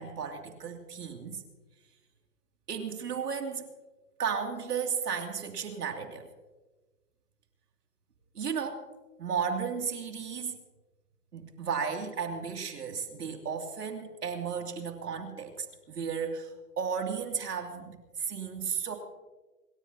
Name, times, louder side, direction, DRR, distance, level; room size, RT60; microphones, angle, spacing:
voice 1, 0.0-1.4 2.7-3.7 4.2-6.3 8.3-8.8 9.2-10.5 11.3-16.5 16.8-19.0, right 6 dB, 80° right, 3 dB, 2.9 m, -34 dB
27.0 x 14.5 x 2.9 m, 1.2 s
hypercardioid pair, 170°, 47 cm